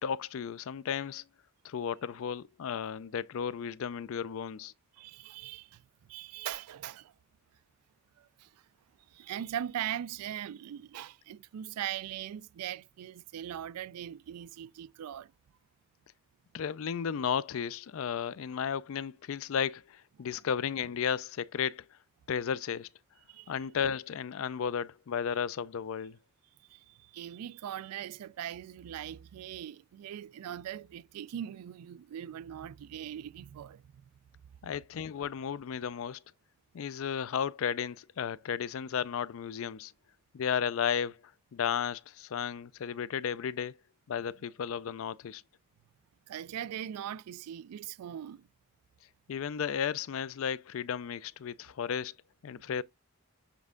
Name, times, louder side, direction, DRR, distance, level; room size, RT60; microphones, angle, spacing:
voice 1, 0.0-1.2 1.6-4.7 16.5-21.9 22.3-22.9 23.5-26.2 34.6-36.2 36.7-39.9 40.3-41.2 41.5-43.7 44.1-45.4 49.3-52.2 52.4-52.8, left 7 dB, 65° left, 0.4 m, -34 dB
voice 2, 4.9-5.8 6.1-7.1 8.2-8.5 9.1-15.3 20.2-20.3 23.3-23.5 26.6-34.0 46.3-48.5, right 10 dB, 90° right, 0.3 m, -40 dB
7.5 x 3.5 x 3.7 m
head